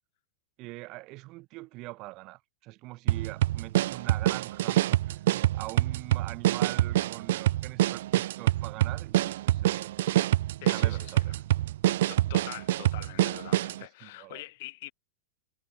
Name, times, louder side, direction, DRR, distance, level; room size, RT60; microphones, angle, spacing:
voice 1, 0.6-9.9 10.6-11.3 14.0-14.4, right 22 dB, 30° right, 3.6 m, -43 dB
sound 1, 3.1-13.8, right 14 dB, 60° right, 1.2 m, -26 dB
voice 2, 10.6-11.3 11.8-14.9, left 20 dB, 45° left, 6.0 m, -44 dB
supercardioid pair, 165°, 0 cm